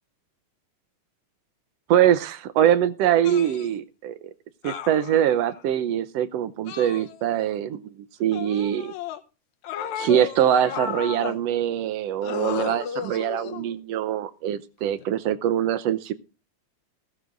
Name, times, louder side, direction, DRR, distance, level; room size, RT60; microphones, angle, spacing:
voice 1, 1.9-4.3 4.6-7.9 8.2-8.9 10.0-16.1, right 10 dB, 75° right, 14 dB, 1.6 m, -23 dB
sound 1, 3.2-3.7 4.6-5.6 6.7-7.5 8.3-9.2 9.6-11.4 12.2-13.7 14.9-15.0, left 8 dB, 75° left, 2.2 m, -34 dB
15.5 x 14.0 x 2.5 m, 0.32 s
omnidirectional pair, 3.4 m